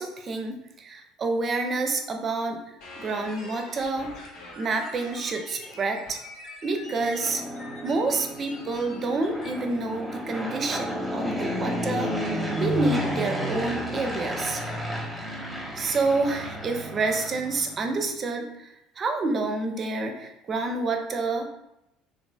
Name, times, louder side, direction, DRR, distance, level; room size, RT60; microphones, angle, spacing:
voice 1, 0.0-4.1 4.6-6.2 6.6-7.4 7.8-14.6 15.8-21.5, right 3 dB, 35° right, 4 dB, 0.4 m, -28 dB
sound 1, 2.8-9.5, left 2 dB, 60° left, 0.8 m, -44 dB
Fixed-wing aircraft airplane, 6.8-17.9, equal, ahead, 0.7 m, -32 dB
3.1 x 2.4 x 2.2 m, 0.87 s
figure-of-eight pair, 60°, 0 cm